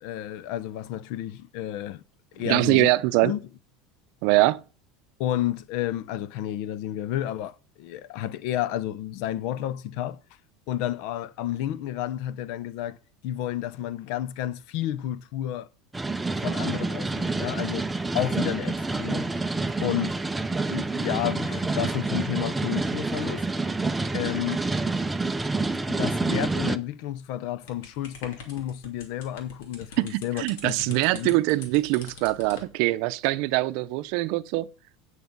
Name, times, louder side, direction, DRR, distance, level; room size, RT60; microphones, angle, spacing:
voice 1, 0.0-2.0 2.3-2.9 3.2-3.5 5.2-10.2 10.7-13.0 13.2-15.7 16.4-19.4 19.8-20.2 20.7-23.5 24.1-24.6 25.9-31.4, left 12 dB, 65° left, 0.6 m, -31 dB
voice 2, 2.5-3.3 4.2-4.6 30.0-34.7, right 19 dB, 65° right, 0.6 m, -23 dB
sound 1, 15.9-26.8, right 3 dB, 10° right, 0.5 m, -28 dB
sound 2, 27.7-32.7, left 4 dB, 85° left, 2.6 m, -44 dB
9.4 x 6.4 x 5.3 m
supercardioid pair, 145°, 0 cm